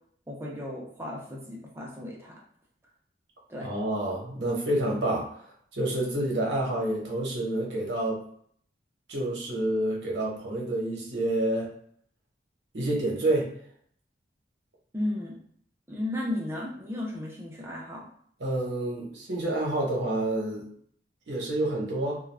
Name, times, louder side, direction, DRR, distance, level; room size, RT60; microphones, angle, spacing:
voice 1, 0.3-2.3 3.5-3.7 14.9-15.4 15.9-18.1, left 1 dB, 15° right, -4 dB, 0.5 m, -34 dB
voice 2, 3.6-5.5 5.7-8.2 9.1-11.7 12.7-13.5 18.4-20.7 21.3-22.2, right 1 dB, 75° right, -3 dB, 0.9 m, -28 dB
2.4 x 2.2 x 3.2 m, 0.62 s
head